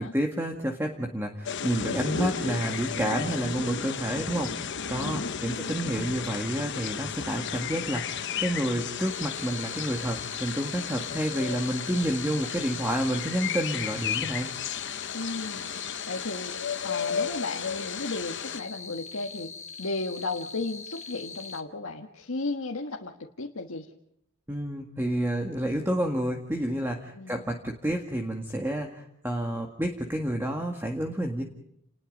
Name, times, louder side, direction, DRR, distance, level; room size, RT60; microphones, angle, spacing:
voice 1, 0.0-14.5 24.5-31.4, right 1 dB, 10° right, 2 dB, 1.9 m, -29 dB
sound 1, 1.5-18.6, left 7 dB, 55° left, 1.0 m, -34 dB
voice 2, 5.3-5.8 15.1-16.5 16.8-19.5 19.8-23.8 27.1-27.6, left 3 dB, 75° left, 1 dB, 1.6 m, -35 dB
sound 2, 9.1-21.6, left 6 dB, 35° left, 1.6 m, -42 dB
30.0 x 20.0 x 5.4 m, 0.75 s
head